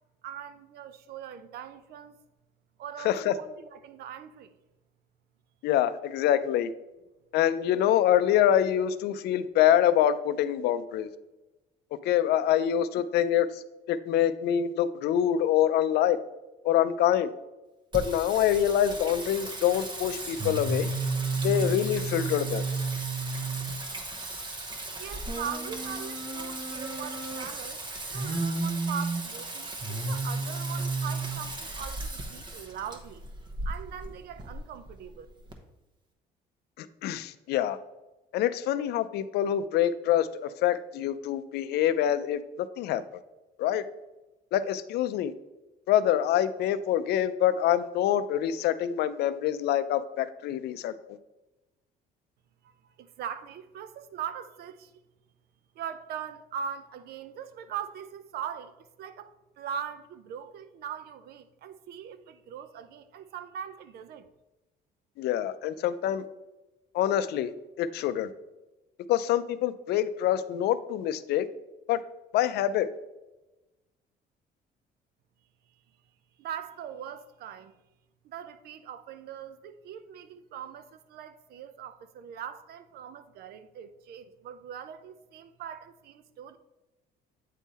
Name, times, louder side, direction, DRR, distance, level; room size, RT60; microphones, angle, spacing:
voice 1, 0.2-2.2 2.8-4.5 25.0-27.8 28.1-33.2 33.6-35.3 52.6-54.9 55.8-59.3 59.6-64.3 76.4-77.7 78.2-86.6, right 8 dB, 70° right, 0.5 m, -41 dB
voice 2, 5.6-6.7 7.3-11.1 12.0-13.6 13.9-16.2 16.6-17.3 17.9-20.9 21.4-22.6 36.8-37.8 38.3-40.3 40.6-43.0 43.6-43.8 44.5-45.3 45.9-50.9 65.2-66.2 66.9-67.5 67.8-68.3 69.1-71.5 71.9-72.0 72.3-72.9, left 11 dB, 75° left, 0.4 m, -25 dB
Singing, 17.9-35.5, right 3 dB, 25° right, 0.9 m, -33 dB
8.2 x 3.7 x 4.1 m
cardioid pair, 110°, 17 cm